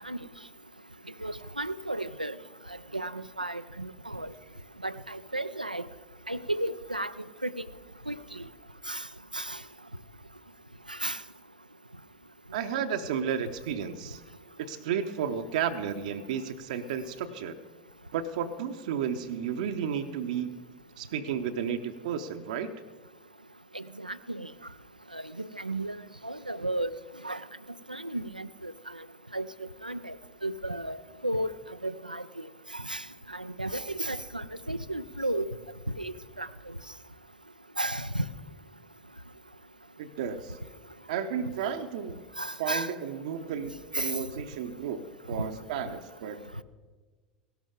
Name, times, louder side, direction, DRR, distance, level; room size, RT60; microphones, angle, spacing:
voice 1, 1.2-2.3 2.9-4.3 4.8-5.9 6.3-7.1 7.4-7.5 8.1-8.4 8.9-9.0 9.3-9.6 10.9-11.2 23.7-24.5 25.1-25.2 25.6-26.9 27.2-27.4 27.9-28.7 29.3-29.5 29.8-30.1 30.4-31.5 31.8-32.4 32.7-33.0 33.3-35.5 36.0-36.5 37.8-38.3 42.4-42.9 43.9-44.1 45.4-45.5, right 1 dB, 90° right, 15 dB, 0.3 m, -33 dB
voice 2, 12.5-14.2 14.6-17.6 18.1-20.5 21.0-22.7 40.0-40.5 41.1-42.2 42.6-46.4, right 8 dB, 60° right, 6 dB, 0.7 m, -33 dB
17.0 x 13.0 x 3.7 m, 1.4 s
figure-of-eight pair, 75°, 4 cm